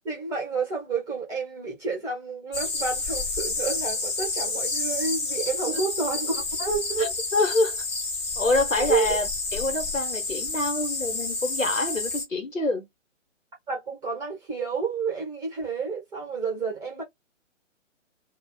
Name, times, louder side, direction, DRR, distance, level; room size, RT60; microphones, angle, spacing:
voice 1, 0.0-7.1 8.9-9.2 13.7-17.0, right 4 dB, 10° right, 0.8 m, -30 dB
sound 1, 2.5-12.3, left 3 dB, 20° left, 0.6 m, -30 dB
voice 2, 7.0-7.8 8.4-12.9, left 2 dB, 90° left, 1.1 m, -26 dB
2.3 x 2.0 x 3.8 m
figure-of-eight pair, 130°, 38 cm